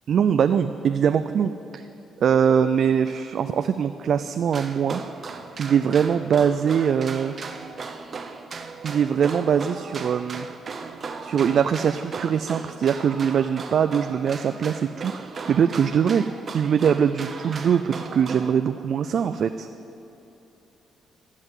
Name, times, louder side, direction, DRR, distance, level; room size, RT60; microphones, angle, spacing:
voice 1, 0.1-1.8 2.2-5.0 5.6-7.3 8.8-10.5 11.2-16.2 16.5-19.7, right 7 dB, 60° right, 10 dB, 0.4 m, -22 dB
sound 1, 4.5-18.5, right 4 dB, 45° right, 0.8 m, -37 dB
14.5 x 5.7 x 9.0 m, 2.9 s
cardioid pair, 90°, 0 cm